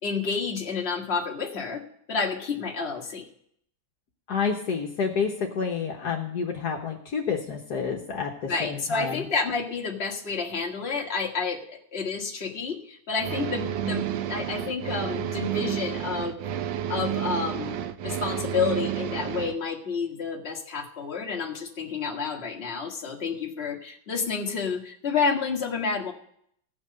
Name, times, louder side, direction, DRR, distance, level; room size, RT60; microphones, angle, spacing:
voice 1, 0.0-1.8 2.1-3.3 8.5-16.4 16.9-26.1, left 5 dB, 35° left, 0 dB, 1.8 m, -30 dB
voice 2, 4.3-9.3, left 6 dB, 65° left, 1 dB, 1.6 m, -29 dB
sound 1, 13.2-19.5, right 10 dB, 85° right, 1.4 m, -30 dB
16.0 x 6.0 x 6.6 m, 0.67 s
omnidirectional pair, 1.9 m